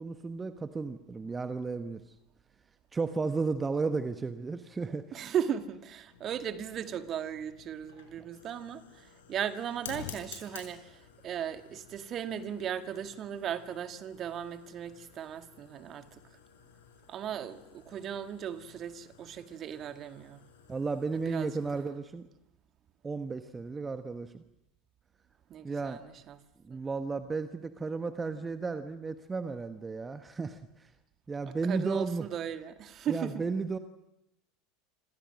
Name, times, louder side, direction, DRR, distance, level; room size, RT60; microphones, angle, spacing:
voice 1, 0.0-2.0 2.9-5.2 20.7-22.3 23.0-24.4 25.6-26.0 26.6-30.9 31.3-32.3 33.1-33.8, right 4 dB, 20° right, 1.3 m, -34 dB
voice 2, 4.8-16.2 17.1-20.4 21.3-21.5 25.5-26.4 26.7-26.8 31.5-33.5, right 9 dB, 35° right, 1.8 m, -37 dB
Fire, 6.1-21.8, left 8 dB, 70° left, 5.7 m, -52 dB
28.5 x 26.5 x 6.4 m
figure-of-eight pair, 75°, 0 cm